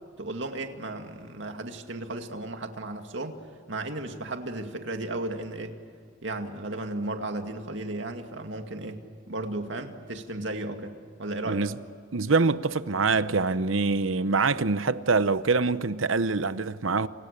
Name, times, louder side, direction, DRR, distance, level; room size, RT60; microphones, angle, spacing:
voice 1, 0.2-3.4 3.7-5.8 6.2-11.6, right 2 dB, 65° right, 2.3 m, -34 dB
voice 2, 12.1-17.1, right 4 dB, 90° right, 0.9 m, -24 dB
29.5 x 28.5 x 6.8 m
head